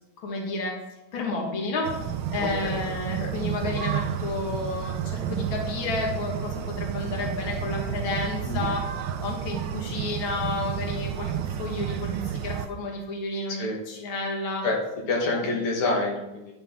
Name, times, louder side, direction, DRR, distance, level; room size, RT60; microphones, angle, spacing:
voice 1, 0.2-0.7 1.1-1.9 2.3-8.8 9.2-14.6 15.3-15.4, left 2 dB, 65° left, 0 dB, 2.4 m, -31 dB
sound 1, 1.8-12.7, right 9 dB, 70° right, 1.2 m, -31 dB
voice 2, 15.1-16.5, left 3 dB, 85° left, -1 dB, 2.3 m, -27 dB
10.0 x 8.0 x 3.6 m, 0.97 s
omnidirectional pair, 2.4 m